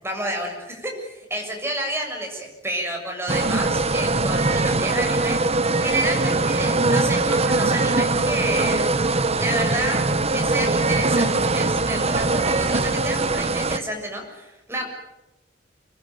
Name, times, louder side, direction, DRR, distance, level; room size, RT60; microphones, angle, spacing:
voice 1, 0.0-8.9 9.4-10.0 10.3-14.9, right 1 dB, 15° right, 2 dB, 6.9 m, -30 dB
sound 1, 3.3-13.8, right 3 dB, 35° right, 1.1 m, -21 dB
25.5 x 20.5 x 9.3 m, 1.0 s
head